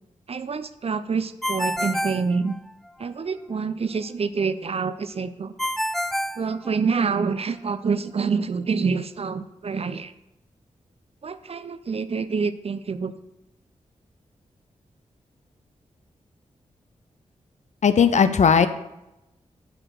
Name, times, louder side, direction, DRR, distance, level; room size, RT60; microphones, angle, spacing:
voice 1, 0.3-2.5 3.0-5.5 6.4-10.1 11.2-13.1, right 5 dB, 50° right, 13 dB, 0.6 m, -27 dB
Ringtone, 1.4-3.1 5.6-7.2, equal, ahead, 0.4 m, -28 dB
voice 2, 17.8-18.7, left 6 dB, 60° left, 11 dB, 0.6 m, -17 dB
6.0 x 4.9 x 6.3 m, 0.92 s
cardioid pair, 45°, 13 cm